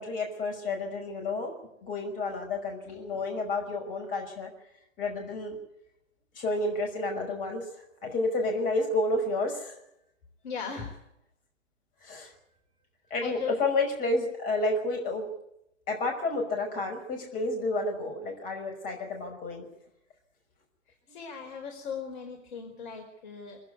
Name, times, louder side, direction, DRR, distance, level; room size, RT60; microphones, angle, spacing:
voice 1, 0.0-1.5 1.8-4.5 5.0-5.6 6.4-7.6 8.0-9.7 12.0-12.3 13.1-15.3 15.9-19.7, left 2 dB, 20° left, 2 dB, 5.7 m, -30 dB
voice 2, 10.4-10.9 13.2-13.5 21.1-23.6, left 6 dB, 40° left, 3 dB, 4.6 m, -37 dB
25.0 x 16.0 x 9.5 m, 0.80 s
figure-of-eight pair, 135°, 39 cm